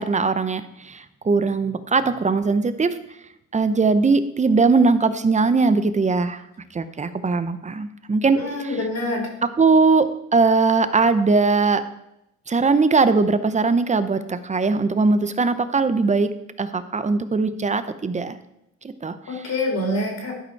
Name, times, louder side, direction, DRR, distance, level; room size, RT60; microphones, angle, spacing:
voice 1, 0.0-3.0 3.5-6.4 6.7-8.9 9.4-11.8 12.5-16.3 16.6-18.4 18.8-19.5, right 4 dB, 25° right, 12 dB, 0.6 m, -20 dB
voice 2, 8.3-9.3 19.3-20.3, left 1 dB, 60° left, 0 dB, 3.2 m, -26 dB
12.0 x 5.1 x 4.6 m, 0.84 s
cardioid pair, 90°, 30 cm